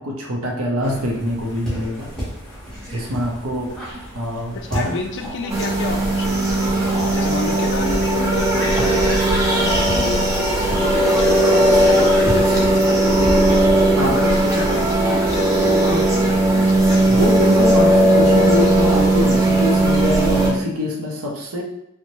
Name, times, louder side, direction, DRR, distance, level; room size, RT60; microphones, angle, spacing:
voice 1, 0.0-2.1 2.9-5.0 14.0-14.2 17.1-21.6, left 1 dB, 65° right, -1 dB, 0.6 m, -24 dB
sound 1, 0.8-12.7, equal, 5° left, 1.0 m, -32 dB
voice 2, 4.5-6.8 7.1-13.6 14.1-17.2, left 3 dB, 55° left, 4 dB, 0.4 m, -30 dB
sound 2, 5.5-20.5, right 1 dB, 15° right, 0.5 m, -17 dB
3.0 x 2.1 x 2.6 m, 0.82 s
head